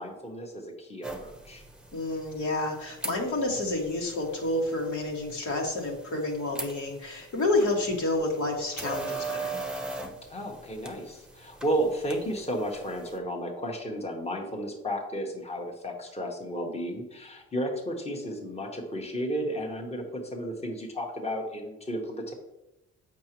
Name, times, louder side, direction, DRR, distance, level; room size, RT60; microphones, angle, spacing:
voice 1, 0.0-1.6 10.3-22.3, equal, 20° left, 1 dB, 1.3 m, -33 dB
sound 1, 1.0-13.2, right 3 dB, 5° right, 0.9 m, -41 dB
voice 2, 1.9-9.6, left 2 dB, 75° left, -1 dB, 2.1 m, -29 dB
7.5 x 5.9 x 3.0 m, 0.91 s
cardioid pair, 90°, 30 cm